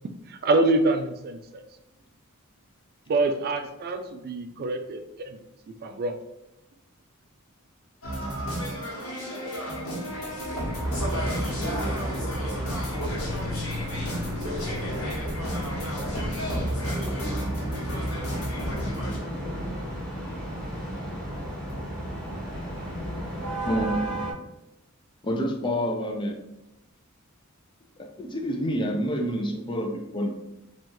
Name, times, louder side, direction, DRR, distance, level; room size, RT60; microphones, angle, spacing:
voice 1, 0.3-1.6 3.1-5.4 5.8-6.2, right 2 dB, 45° right, 8 dB, 0.3 m, -26 dB
sound 1, 8.0-19.2, equal, 70° left, 1.3 m, -31 dB
voice 2, 10.3-10.7 11.0-12.9 14.4-16.2 16.7-17.2 23.2-23.9, right 1 dB, 70° right, 0 dB, 0.9 m, -41 dB
sound 2, 10.7-24.3, equal, 5° left, 1.0 m, -35 dB
voice 3, 23.6-24.0 25.2-26.3 28.0-30.4, equal, 20° left, 3 dB, 0.5 m, -28 dB
3.0 x 2.4 x 4.3 m, 0.87 s
head